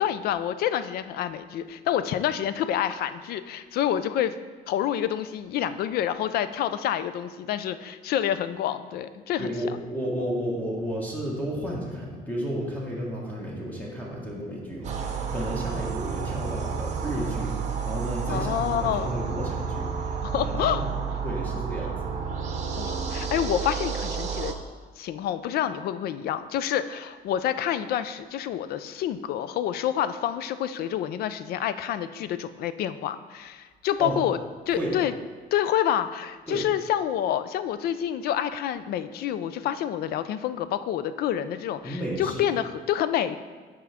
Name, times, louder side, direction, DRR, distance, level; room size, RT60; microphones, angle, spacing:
voice 1, 0.0-4.3 4.7-9.5 18.3-19.1 20.2-20.8 22.8-24.6 25.0-34.4 34.7-35.1 35.5-43.4, left 10 dB, 65° left, 12 dB, 0.4 m, -28 dB
voice 2, 9.4-22.0 34.0-34.2 34.7-35.0 36.5-36.7 41.8-42.5, equal, 10° left, -4 dB, 1.3 m, -32 dB
sound 1, 14.8-24.5, right 6 dB, 45° right, 0.7 m, -31 dB
7.1 x 4.9 x 3.5 m, 1.4 s
cardioid pair, 110°, 17 cm